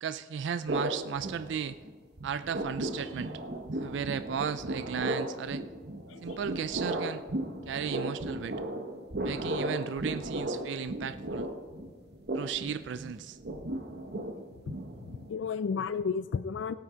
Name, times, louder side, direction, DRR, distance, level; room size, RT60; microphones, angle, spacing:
voice 1, 0.0-1.8 2.2-3.3 3.7-5.6 6.2-7.2 7.7-8.6 9.2-11.5 12.3-13.4, right 7 dB, 75° right, 13 dB, 0.3 m, -35 dB
sound 1, 0.7-1.9 2.2-15.3, right 1 dB, 60° right, 1.0 m, -35 dB
voice 2, 15.1-16.7, left 5 dB, 85° left, 14 dB, 0.4 m, -33 dB
16.0 x 8.7 x 5.0 m, 1.4 s
head